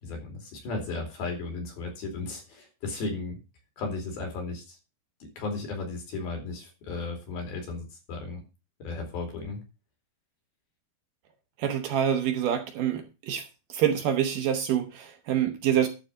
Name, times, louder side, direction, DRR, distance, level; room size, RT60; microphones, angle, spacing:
voice 1, 0.0-3.4 3.8-4.8 5.4-8.4 8.8-9.6, left 3 dB, 70° left, 3 dB, 4.7 m, -35 dB
voice 2, 11.6-13.4 13.7-15.9, right 9 dB, 70° right, 6 dB, 2.3 m, -26 dB
11.5 x 4.2 x 7.3 m, 0.29 s
omnidirectional pair, 4.5 m